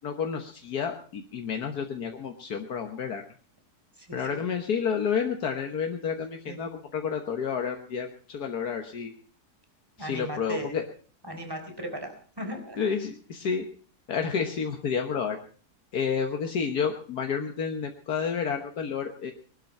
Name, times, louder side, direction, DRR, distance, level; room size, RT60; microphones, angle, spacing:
voice 1, 0.0-3.2 4.1-9.1 10.0-10.8 12.8-13.6 14.1-15.4 15.9-19.3, left 6 dB, 75° left, 4 dB, 1.8 m, -30 dB
voice 2, 4.0-4.4 6.4-6.7 10.0-10.7 11.2-12.8, right 1 dB, 15° right, 5 dB, 3.9 m, -37 dB
20.5 x 12.0 x 5.4 m, 0.43 s
omnidirectional pair, 1.7 m